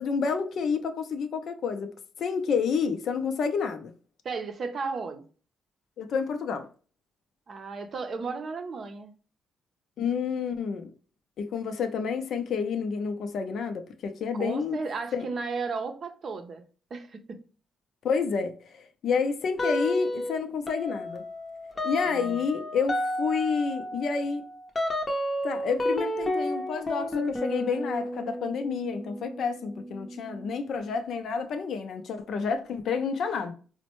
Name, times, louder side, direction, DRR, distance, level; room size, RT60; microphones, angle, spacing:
voice 1, 0.0-1.9 2.2-3.9 6.0-6.7 10.0-10.9 11.4-14.8 15.1-15.3 18.0-21.3 21.8-24.4 25.4-33.5, left 5 dB, 65° left, 0.5 m, -29 dB
voice 2, 4.2-5.2 7.5-9.1 14.3-16.6 16.9-17.4 22.1-22.5, right 4 dB, 50° right, 0.6 m, -34 dB
sound 1, 19.6-20.3 20.7-31.0, left 1 dB, 30° left, 0.6 m, -32 dB
4.2 x 2.1 x 2.9 m
cardioid pair, 90°, 0 cm